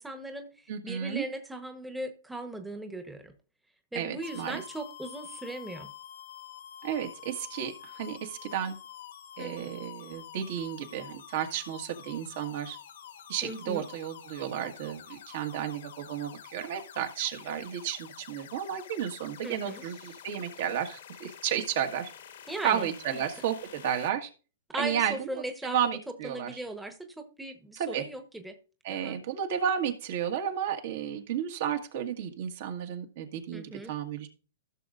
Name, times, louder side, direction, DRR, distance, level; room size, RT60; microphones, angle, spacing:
voice 1, 0.0-3.3 3.9-5.9 9.4-9.7 13.4-13.9 19.4-19.8 22.5-22.9 24.7-25.8 26.2-28.6 28.9-29.2 33.5-33.9, right 1 dB, 5° right, 6 dB, 1.1 m, -38 dB
voice 2, 0.7-1.2 3.9-4.6 6.8-8.8 9.4-12.8 13.3-22.1 22.6-24.3 24.8-25.2 25.6-26.5 27.8-28.0 28.8-34.3, right 9 dB, 60° right, 5 dB, 1.7 m, -32 dB
sound 1, 4.2-24.1, left 10 dB, 70° left, 1.4 m, -48 dB
15.5 x 6.5 x 2.6 m, 0.35 s
hypercardioid pair, 120°, 0 cm